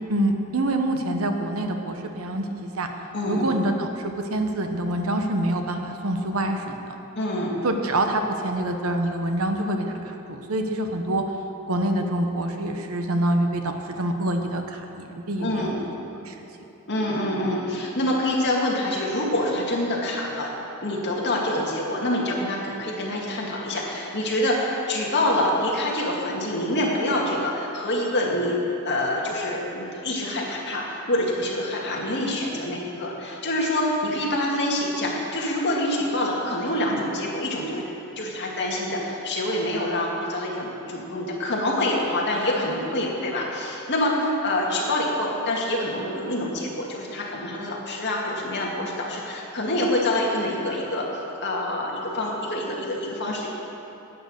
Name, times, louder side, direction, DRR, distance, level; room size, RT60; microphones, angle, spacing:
voice 1, 0.1-2.9 3.3-6.8 7.6-11.2 11.7-15.8 16.2-16.5, right 1 dB, 70° right, 5 dB, 1.0 m, -26 dB
voice 2, 3.1-3.4 7.2-7.5 15.4-15.8 16.9-20.5 20.8-28.6 28.8-37.8 38.2-51.1 51.4-53.5, left 1 dB, 50° left, -3 dB, 2.2 m, -26 dB
11.5 x 9.1 x 6.5 m, 3.0 s
head